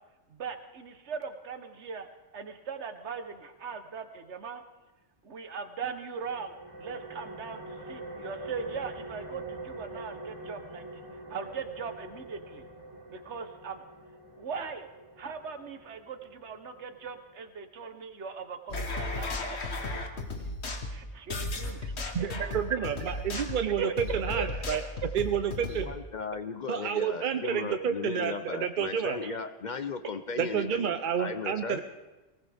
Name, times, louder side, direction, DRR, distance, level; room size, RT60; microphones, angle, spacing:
voice 1, 0.3-2.1 2.3-4.6 5.2-11.0 11.3-12.6 13.1-13.8 14.4-14.9 15.2-19.6 20.9-22.8 23.1-25.1 26.9-27.0 27.4-27.8 28.3-28.4 29.2-29.4, right 5 dB, 75° right, 8 dB, 1.4 m, -39 dB
sound 1, 6.1-17.5, right 1 dB, 20° right, 2.2 m, -45 dB
sound 2, 18.7-25.9, left 2 dB, 70° left, 1.5 m, -35 dB
voice 2, 22.1-24.8 25.1-25.9 26.7-29.2 30.4-31.8, right 8 dB, 55° right, 8 dB, 0.7 m, -30 dB
voice 3, 25.7-31.8, left 5 dB, 50° left, 9 dB, 0.7 m, -36 dB
19.0 x 18.5 x 3.5 m, 1.1 s
omnidirectional pair, 1.2 m